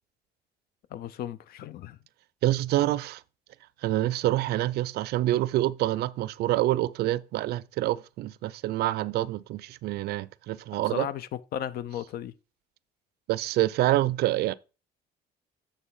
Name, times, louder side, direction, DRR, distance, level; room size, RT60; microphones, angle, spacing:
voice 1, 0.9-2.0 10.8-12.3, left 10 dB, 65° left, 0.6 m, -35 dB
voice 2, 2.4-3.2 3.8-11.1 13.3-14.5, right 15 dB, 70° right, 0.4 m, -26 dB
8.2 x 3.3 x 5.4 m
cardioid pair, 110°, 17 cm